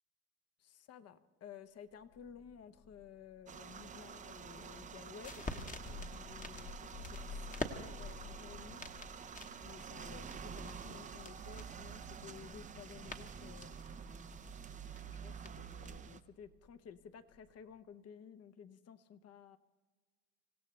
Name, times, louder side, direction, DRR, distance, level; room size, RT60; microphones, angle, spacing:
voice 1, 0.6-8.8 9.6-13.8 15.1-19.6, left 8 dB, 35° left, 12 dB, 0.9 m, -54 dB
Thunder, 2.0-17.8, left 4 dB, 60° left, 3.5 m, -55 dB
sound 1, 3.5-16.2, right 7 dB, 20° right, 0.5 m, -49 dB
sound 2, 4.7-16.0, left 2 dB, 20° left, 1.2 m, -49 dB
26.5 x 16.0 x 3.3 m, 1.4 s
supercardioid pair, 110°, 42 cm